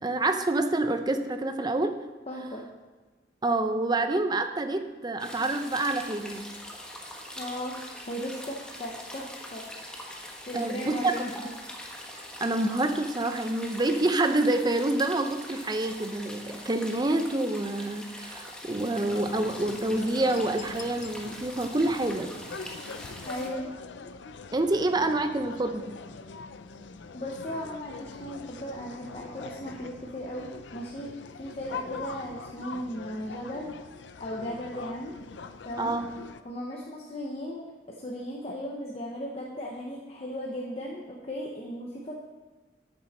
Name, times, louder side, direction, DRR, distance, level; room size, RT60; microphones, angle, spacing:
voice 1, 0.0-1.9 3.4-6.5 10.5-11.3 12.4-22.3 24.5-26.0 35.8-36.1, right 2 dB, 25° right, 8 dB, 0.7 m, -27 dB
voice 2, 2.3-2.7 7.4-9.7 10.5-11.5 23.3-23.7 27.1-31.1 31.4-33.8 34.2-35.1 35.6-36.0 36.4-42.1, equal, 35° left, -2 dB, 1.0 m, -36 dB
sound 1, 5.2-23.5, equal, 5° left, 1.1 m, -43 dB
sound 2, 19.1-36.4, left 4 dB, 75° left, 0.5 m, -43 dB
12.5 x 7.1 x 4.3 m, 1.2 s
head